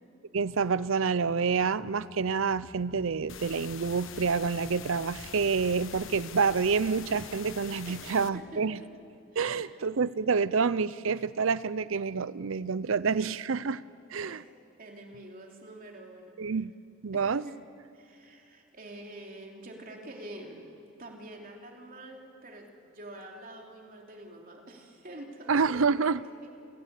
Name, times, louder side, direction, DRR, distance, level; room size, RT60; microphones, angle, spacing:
voice 1, 0.3-8.8 9.4-13.8 14.1-14.4 16.4-16.7 17.0-17.4 25.5-26.2, right 5 dB, 65° right, 18 dB, 0.5 m, -28 dB
sound 1, 1.8-7.0, equal, 20° left, 2.1 m, -57 dB
sound 2, 3.3-8.3, left 6 dB, 65° left, 1.2 m, -44 dB
voice 2, 7.9-9.0 9.3-9.7 14.2-14.5 14.8-16.4 17.1-17.6 17.9-20.7 21.0-26.1 26.4-26.5, right 1 dB, 45° right, 1 dB, 3.2 m, -46 dB
30.0 x 17.0 x 8.3 m, 2.5 s
head